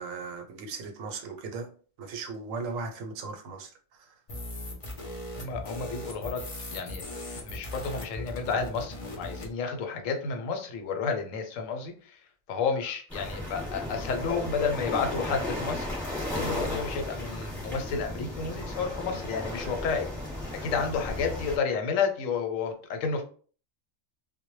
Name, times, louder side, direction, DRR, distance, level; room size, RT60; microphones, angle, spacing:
voice 1, 0.0-1.7 2.0-4.2, right 4 dB, 90° right, 5 dB, 1.0 m, -37 dB
sound 1, 4.3-9.5, left 1 dB, 45° left, 0.4 m, -39 dB
voice 2, 5.4-6.5 6.7-7.0 7.3-12.2 12.5-15.9 16.3-20.1 20.6-23.2, left 5 dB, 85° left, 5 dB, 1.0 m, -31 dB
sound 2, 13.1-21.6, left 1 dB, ahead, 0.9 m, -35 dB
2.1 x 2.1 x 3.0 m, 0.42 s
omnidirectional pair, 1.3 m